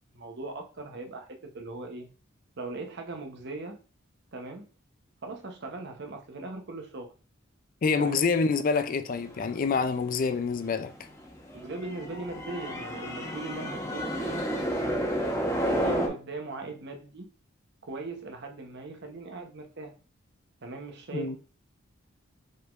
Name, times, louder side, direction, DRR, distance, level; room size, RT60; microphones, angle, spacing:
voice 1, 0.1-2.1 2.6-3.8 4.3-4.7 5.2-7.1 8.0-8.2 11.5-14.4 14.8-15.1 15.6-17.3 17.8-19.9 20.6-21.4, right 2 dB, 55° right, 0.8 m, -39 dB
voice 2, 7.8-10.9 21.1-21.4, left 4 dB, 40° left, 0.4 m, -26 dB
sound 1, 9.1-16.1, equal, 15° left, 1.0 m, -31 dB
5.4 x 3.7 x 2.5 m
head